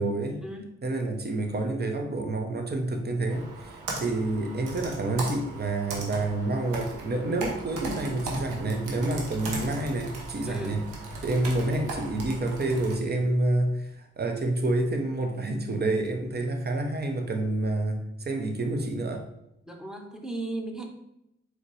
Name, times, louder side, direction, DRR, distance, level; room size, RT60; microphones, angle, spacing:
voice 1, 0.0-0.4 0.8-10.8 11.2-19.2, right 2 dB, 35° right, 4 dB, 0.9 m, -28 dB
Computer keyboard, 3.3-12.9, right 2 dB, 90° right, 0.8 m, -37 dB
voice 2, 10.4-10.8 19.7-20.9, right 2 dB, ahead, 3 dB, 1.0 m, -36 dB
4.0 x 2.9 x 3.2 m, 0.81 s
supercardioid pair, 40°, 30 cm